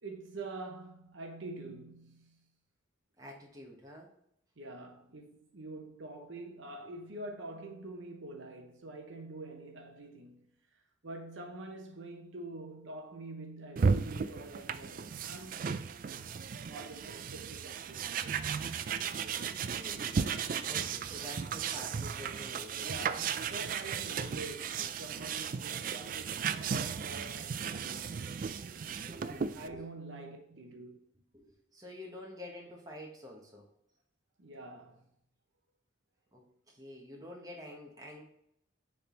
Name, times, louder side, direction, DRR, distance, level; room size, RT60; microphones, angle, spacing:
voice 1, 0.0-2.4 4.6-15.7 16.6-18.3 22.8-28.3 29.5-31.0 34.4-35.1, right 2 dB, 70° right, 0.9 m, -46 dB
voice 2, 3.2-4.1 19.7-20.3 20.6-23.1 29.0-29.8 31.3-33.7 36.3-38.2, left 1 dB, 20° right, 1.2 m, -48 dB
sound 1, 13.8-29.7, right 6 dB, 45° right, 0.3 m, -35 dB
7.0 x 3.6 x 3.8 m
head